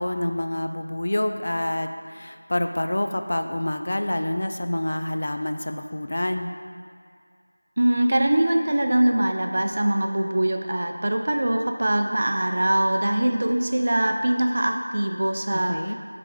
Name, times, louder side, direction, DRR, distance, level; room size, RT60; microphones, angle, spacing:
voice 1, 0.0-6.5 15.5-15.9, left 1 dB, 50° left, 6 dB, 0.3 m, -27 dB
voice 2, 7.8-15.9, right 1 dB, 40° right, 4 dB, 0.4 m, -22 dB
6.7 x 3.4 x 4.8 m, 2.3 s
figure-of-eight pair, 175°, 0 cm